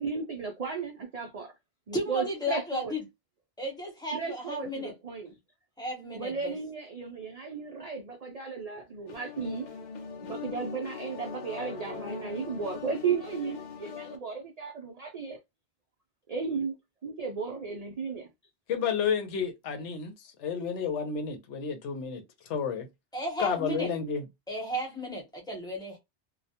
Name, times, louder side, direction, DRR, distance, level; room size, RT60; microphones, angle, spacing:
voice 1, 0.0-1.5 1.9-2.9 4.1-5.4 6.1-9.7 10.2-15.4 16.3-16.7 17.0-18.3, right 5 dB, 65° right, 0.4 m, -34 dB
voice 2, 1.9-3.0 3.6-4.9 5.8-6.6 23.1-23.9 24.5-26.0, left 1 dB, 5° left, 0.7 m, -34 dB
sound 1, 9.1-14.2, left 7 dB, 55° left, 0.5 m, -41 dB
voice 3, 18.7-22.2 22.5-22.9 23.4-24.2, left 6 dB, 80° left, 1.0 m, -31 dB
2.3 x 2.1 x 2.7 m
omnidirectional pair, 1.2 m